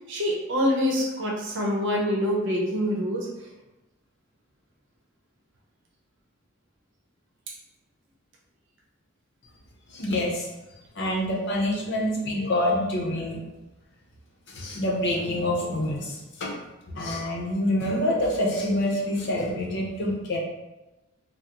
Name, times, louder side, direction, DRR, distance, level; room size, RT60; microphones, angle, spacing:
voice 1, 0.1-3.3, equal, 60° right, -1 dB, 0.7 m, -25 dB
voice 2, 9.9-10.5 11.0-13.4 14.5-16.5 16.9-20.4, left 1 dB, 60° left, -2 dB, 0.7 m, -26 dB
3.6 x 2.0 x 2.9 m, 1.0 s
head